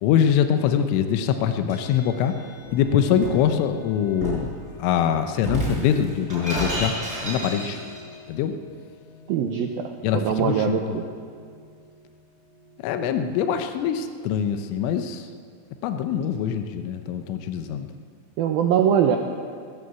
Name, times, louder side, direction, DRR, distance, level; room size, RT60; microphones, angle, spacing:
voice 1, 0.0-2.3 2.7-4.5 4.8-6.9 7.2-7.8 8.3-8.5 10.0-11.0 12.8-15.3 15.8-17.9, left 8 dB, 85° left, 8 dB, 3.5 m, -23 dB
sound 1, 1.7-15.2, left 3 dB, 50° left, 5.0 m, -49 dB
Shatter, 2.6-3.5 4.2-4.5 5.4-8.0, right 1 dB, 15° right, 7.0 m, -30 dB
voice 2, 9.3-11.0 18.4-19.2, right 8 dB, 85° right, 4 dB, 2.1 m, -22 dB
20.0 x 16.0 x 8.2 m, 2.1 s
omnidirectional pair, 5.6 m